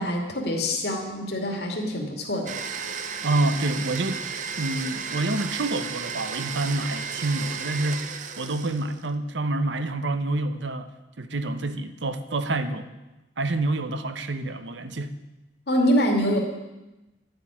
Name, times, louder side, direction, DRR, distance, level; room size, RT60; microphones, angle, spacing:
voice 1, 0.0-2.5 15.7-16.4, equal, 60° left, 1 dB, 2.7 m, -25 dB
Domestic sounds home sounds, 2.5-9.1, right 6 dB, 40° right, 0.9 m, -34 dB
voice 2, 3.2-4.2 4.6-8.0 8.4-10.9 11.2-12.9 13.4-15.1, right 2 dB, 80° right, 10 dB, 1.0 m, -27 dB
12.5 x 8.0 x 9.9 m, 1.0 s
head